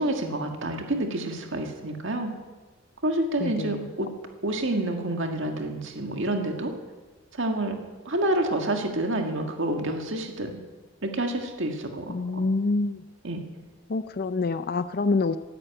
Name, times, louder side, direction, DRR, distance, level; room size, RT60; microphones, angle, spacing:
voice 1, 0.0-2.3 3.0-4.1 4.4-6.7 7.3-7.8 8.1-10.6 11.0-12.5 13.2-13.4, right 1 dB, 60° right, 4 dB, 1.8 m, -28 dB
voice 2, 3.4-3.8 12.1-13.0 13.9-15.4, left 3 dB, 45° left, 11 dB, 0.5 m, -26 dB
14.0 x 11.5 x 9.0 m, 1.3 s
head